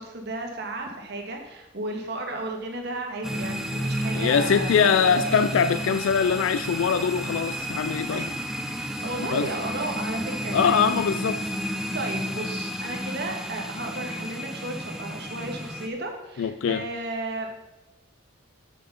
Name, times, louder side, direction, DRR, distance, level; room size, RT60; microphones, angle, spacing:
voice 1, 0.0-4.8 5.1-5.5 8.1-8.4 8.7-11.1 11.9-17.7, right 2 dB, 50° right, 1.4 m, -34 dB
sound 1, 3.2-15.9, equal, ahead, 0.5 m, -31 dB
voice 2, 4.1-8.2 9.3-9.5 10.5-11.5 16.4-16.8, left 6 dB, 70° left, 0.3 m, -23 dB
7.5 x 6.6 x 5.5 m
head